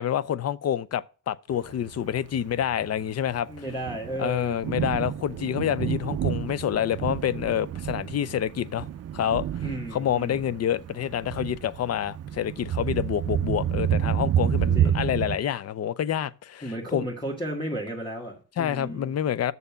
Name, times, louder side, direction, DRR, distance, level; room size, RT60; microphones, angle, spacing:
voice 1, 0.0-3.5 4.2-8.9 9.1-9.6 9.9-17.0 18.6-19.5, left 10 dB, 50° left, 0.6 m, -28 dB
Thunder, 1.7-15.4, right 10 dB, 50° right, 0.5 m, -29 dB
voice 2, 3.5-4.6 9.6-10.5 14.7-15.1 16.6-19.1, right 1 dB, 15° left, 2.0 m, -34 dB
6.8 x 6.8 x 7.0 m
cardioid pair, 100°, 33 cm